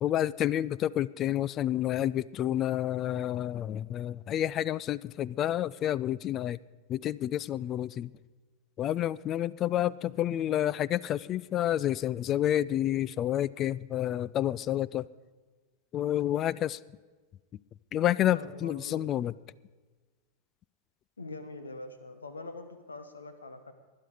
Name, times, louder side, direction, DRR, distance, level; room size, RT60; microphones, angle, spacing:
voice 1, 0.0-6.6 6.9-8.1 8.8-15.1 15.9-16.8 17.9-19.3, left 12 dB, 30° left, 21 dB, 0.3 m, -29 dB
voice 2, 18.3-19.0 21.2-23.7, left 2 dB, 75° left, 9 dB, 1.5 m, -43 dB
20.0 x 10.5 x 4.9 m, 1.3 s
figure-of-eight pair, 90°, 0 cm